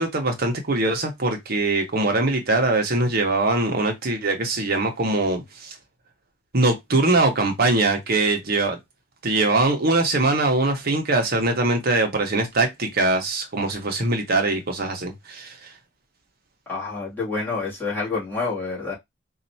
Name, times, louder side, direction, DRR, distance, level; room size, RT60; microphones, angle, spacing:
voice 1, 0.0-5.7 6.5-8.8 9.2-15.7, right 2 dB, 55° right, 1.0 m, -22 dB
voice 2, 16.7-18.9, left 4 dB, 10° left, 2.3 m, -28 dB
4.4 x 2.7 x 2.7 m
head